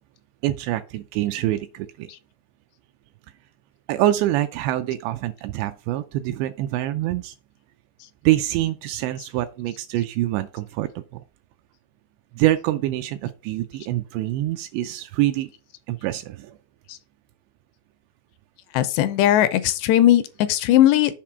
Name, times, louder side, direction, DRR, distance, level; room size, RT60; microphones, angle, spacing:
voice 1, 0.4-2.1 3.9-7.4 8.2-11.2 12.3-15.5 15.9-16.6, right 14 dB, 85° right, 2.7 m, -25 dB
voice 2, 18.7-21.1, left 12 dB, 80° left, 2.7 m, -18 dB
7.5 x 4.1 x 5.7 m
omnidirectional pair, 5.2 m